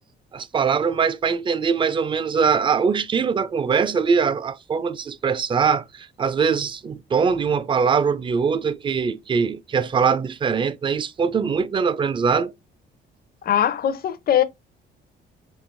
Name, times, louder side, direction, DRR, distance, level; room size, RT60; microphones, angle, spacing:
voice 1, 0.3-12.5, right 6 dB, 25° right, 0.4 m, -22 dB
voice 2, 13.4-14.4, left 10 dB, 50° left, 0.6 m, -21 dB
4.6 x 3.3 x 2.5 m
cardioid pair, 130°, 20 cm